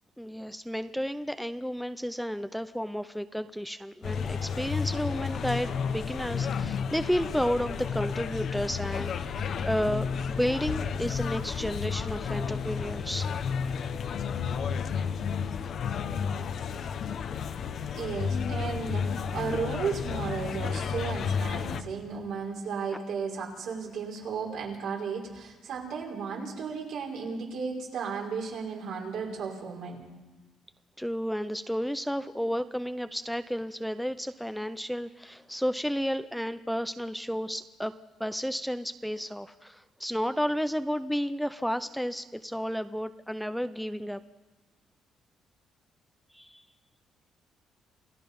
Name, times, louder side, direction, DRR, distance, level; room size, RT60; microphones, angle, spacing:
voice 1, 0.2-13.3 31.0-37.9 38.2-44.2 46.3-46.6, equal, ahead, 11 dB, 0.7 m, -32 dB
sound 1, 4.0-21.8, left 6 dB, 60° left, 1.1 m, -32 dB
voice 2, 17.9-30.0, right 5 dB, 75° right, -1 dB, 5.2 m, -34 dB
28.5 x 17.0 x 5.5 m, 1.2 s
cardioid pair, 110°, 0 cm